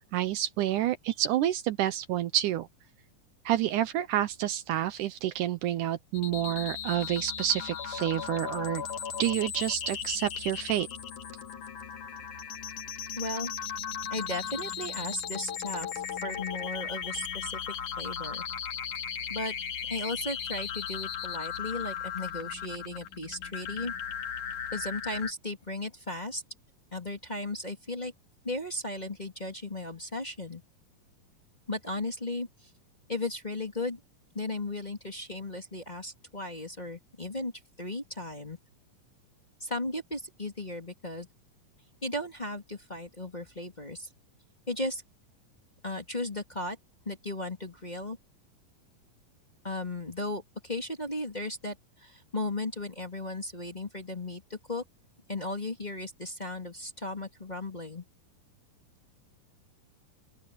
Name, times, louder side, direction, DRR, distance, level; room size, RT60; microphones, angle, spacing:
voice 1, 0.1-2.7 3.5-8.8 9.2-10.9, right 12 dB, 75° right, 2.2 m, -29 dB
sound 1, 6.1-25.3, left 8 dB, 65° left, 3.6 m, -37 dB
voice 2, 13.2-13.7 14.1-17.6 18.0-18.4 19.3-19.5 19.9-23.9 24.7-26.4 26.9-28.1 28.4-30.6 31.7-32.7 33.1-34.0 34.3-37.5 37.8-38.6 39.6-41.3 42.0-44.1 44.7-45.0 45.8-46.8 47.1-48.2 49.6-54.8 55.3-58.0, left 2 dB, 15° left, 2.3 m, -36 dB
open air
omnidirectional pair, 3.9 m